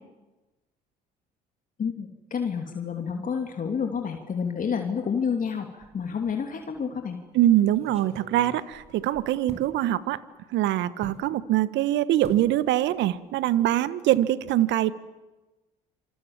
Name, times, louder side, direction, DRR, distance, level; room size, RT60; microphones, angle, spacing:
voice 1, 1.8-7.2, left 6 dB, 40° left, 4 dB, 3.1 m, -29 dB
sound 1, 5.8-6.4 6.8-6.9 7.7-9.7 11.0-11.3 12.2-12.5 12.8-13.2 13.4-13.6, right 2 dB, 30° right, 4.6 m, -45 dB
voice 2, 7.3-10.2 10.5-14.9, right 13 dB, 65° right, 16 dB, 1.3 m, -23 dB
26.5 x 26.5 x 7.5 m, 1.1 s
hypercardioid pair, 60°, 21 cm